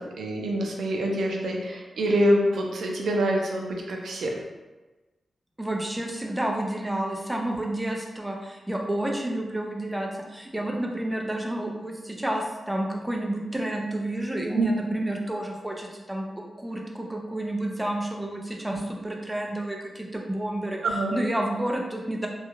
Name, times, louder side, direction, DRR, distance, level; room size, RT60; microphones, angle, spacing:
voice 1, 0.0-4.3 14.5-14.7 20.8-21.2, right 1 dB, 85° right, 0 dB, 0.4 m, -25 dB
voice 2, 5.6-20.8 21.1-22.3, right 1 dB, 5° right, 0 dB, 0.3 m, -30 dB
2.3 x 2.2 x 3.0 m, 1.2 s
wide cardioid pair, 155°, 0 cm